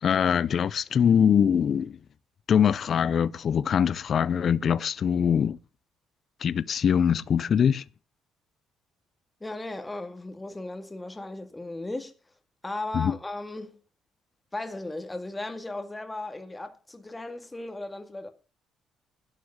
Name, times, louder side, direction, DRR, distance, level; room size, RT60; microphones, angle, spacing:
voice 1, 0.0-2.0 2.5-5.6 6.4-7.8 12.9-13.2, left 8 dB, 50° left, 0.5 m, -23 dB
voice 2, 9.4-12.1 12.6-13.8 14.5-18.3, left 2 dB, 15° left, 1.9 m, -36 dB
11.5 x 6.2 x 8.5 m
cardioid pair, 90°, 0 cm